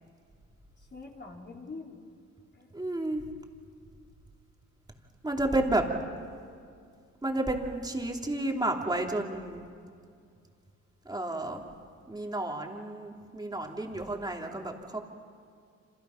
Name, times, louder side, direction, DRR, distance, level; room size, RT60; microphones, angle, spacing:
voice 1, 0.8-2.0 2.5-2.8, left 3 dB, 35° left, -1 dB, 4.4 m, -45 dB
voice 2, 2.7-3.3 5.2-5.8 7.2-9.6 11.0-11.6 12.1-15.0, right 2 dB, 15° right, 1 dB, 3.2 m, -31 dB
29.0 x 26.5 x 5.9 m, 2.2 s
cardioid pair, 90°, 30 cm